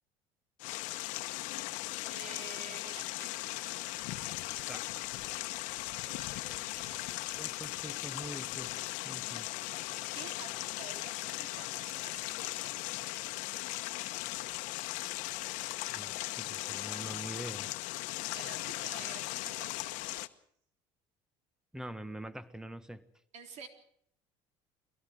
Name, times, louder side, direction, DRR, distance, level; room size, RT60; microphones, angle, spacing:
sound 1, 0.6-20.3, left 19 dB, 80° left, 1.1 m, -38 dB
voice 1, 2.1-3.4 6.0-7.6 10.1-12.7 18.3-20.0 23.3-23.7, right 6 dB, 65° right, 3.6 m, -50 dB
voice 2, 7.4-8.8 9.0-9.5 15.9-17.7 21.7-23.0, right 1 dB, 5° right, 1.4 m, -44 dB
23.0 x 17.0 x 7.6 m
cardioid pair, 105°, 13 cm